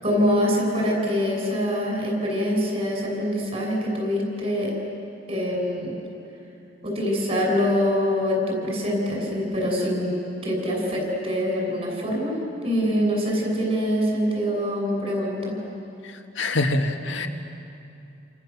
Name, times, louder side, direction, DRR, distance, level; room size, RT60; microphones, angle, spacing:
voice 1, 0.0-4.7 5.3-6.0 6.8-10.1 10.4-12.4 12.6-15.6, equal, 30° right, -1 dB, 7.1 m, -24 dB
voice 2, 16.0-17.3, left 2 dB, 75° left, 4 dB, 1.9 m, -25 dB
29.0 x 27.0 x 7.4 m, 2.8 s
head